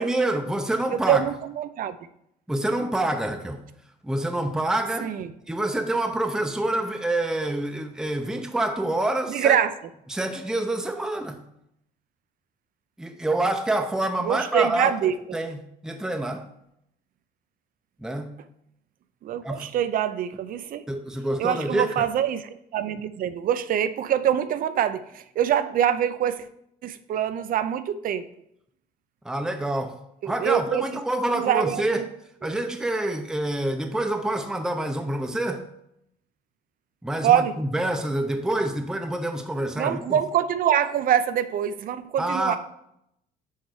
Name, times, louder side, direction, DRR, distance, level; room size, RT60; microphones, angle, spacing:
voice 1, 0.0-1.3 2.5-3.6 4.0-5.1 5.5-9.6 10.1-11.4 13.0-15.0 15.3-16.4 18.0-18.3 19.4-19.7 20.9-22.1 29.2-30.0 30.2-32.0 32.4-35.7 37.0-40.2 42.2-42.6, right 1 dB, 5° right, 0.6 m, -27 dB
voice 2, 0.9-2.0 5.0-5.3 9.3-9.7 14.2-15.4 19.2-20.8 21.4-26.5 26.8-28.3 30.2-30.9 31.3-32.0 37.2-37.6 39.8-42.6, right 10 dB, 55° right, 0.5 m, -24 dB
6.6 x 4.4 x 4.7 m
cardioid pair, 110°, 17 cm